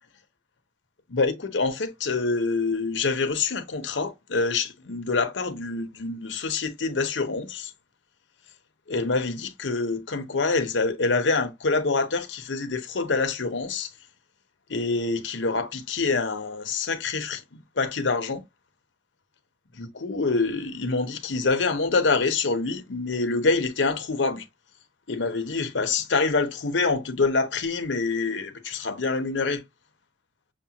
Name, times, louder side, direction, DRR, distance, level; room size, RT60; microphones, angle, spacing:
voice 1, 1.1-7.7 8.9-13.9 14.7-18.4 19.7-24.5 25.1-29.6, left 3 dB, 90° left, 0.9 m, -26 dB
6.6 x 2.2 x 2.8 m
head